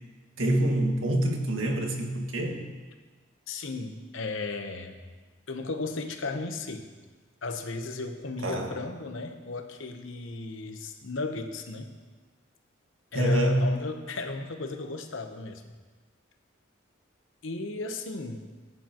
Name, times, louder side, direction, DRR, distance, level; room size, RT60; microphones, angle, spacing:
voice 1, 0.4-2.6 8.4-8.7 13.1-13.7, right 1 dB, 90° right, 1 dB, 1.8 m, -26 dB
voice 2, 3.5-5.0 5.5-6.9 7.4-12.0 13.1-15.6 17.4-18.4, left 3 dB, 80° left, 6 dB, 1.0 m, -35 dB
16.5 x 9.9 x 3.0 m, 1.4 s
head